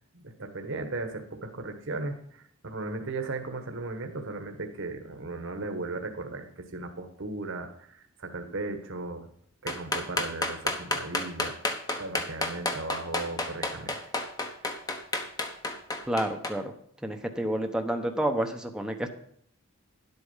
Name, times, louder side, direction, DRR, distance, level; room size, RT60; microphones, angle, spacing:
voice 1, 0.0-9.3 9.6-11.6 12.0-14.1, right 3 dB, 60° right, 5 dB, 1.4 m, -36 dB
sound 1, 9.7-16.5, left 2 dB, 15° left, 1.1 m, -30 dB
voice 2, 16.1-16.7 17.0-19.1, right 1 dB, 5° right, 4 dB, 0.9 m, -29 dB
11.0 x 8.2 x 5.6 m, 0.64 s
head